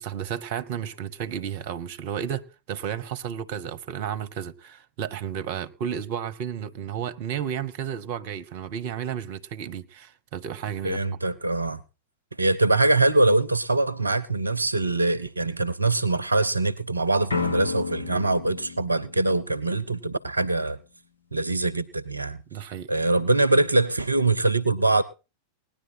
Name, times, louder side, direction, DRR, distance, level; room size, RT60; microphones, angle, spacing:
voice 1, 0.0-11.0 22.5-22.9, right 9 dB, 50° right, 1.0 m, -32 dB
voice 2, 10.8-11.8 12.4-20.8 21.3-22.4 22.9-25.0, right 2 dB, 80° right, 0.6 m, -23 dB
sound 1, 17.3-20.2, left 4 dB, 75° left, 1.1 m, -32 dB
18.5 x 10.5 x 4.2 m
figure-of-eight pair, 90°, 0 cm